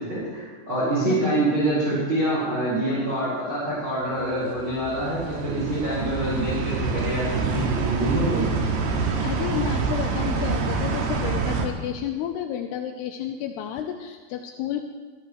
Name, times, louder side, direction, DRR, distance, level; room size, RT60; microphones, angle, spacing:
voice 1, 0.0-8.5, right 1 dB, 30° right, -8 dB, 5.2 m, -26 dB
sound 1, 4.1-11.7, right 4 dB, 70° right, 3.4 m, -26 dB
voice 2, 9.2-14.8, left 10 dB, 80° left, 5 dB, 2.7 m, -31 dB
22.5 x 15.0 x 3.2 m, 1.4 s
omnidirectional pair, 4.9 m